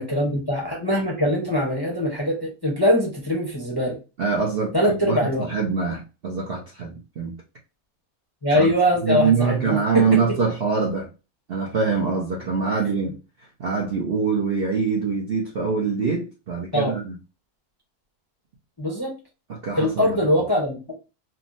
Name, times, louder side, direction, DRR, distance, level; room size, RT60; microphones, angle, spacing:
voice 1, 0.0-4.0 4.7-5.5 8.4-10.2 12.7-12.8 16.7-16.9 18.8-19.1 19.8-21.0, left 1 dB, 20° left, 0.6 m, -22 dB
voice 2, 4.2-7.3 8.5-8.7 9.0-11.1 11.5-13.2 13.6-17.1 19.5-20.2, right 5 dB, 60° right, 0.6 m, -24 dB
3.5 x 2.0 x 2.5 m
omnidirectional pair, 1.6 m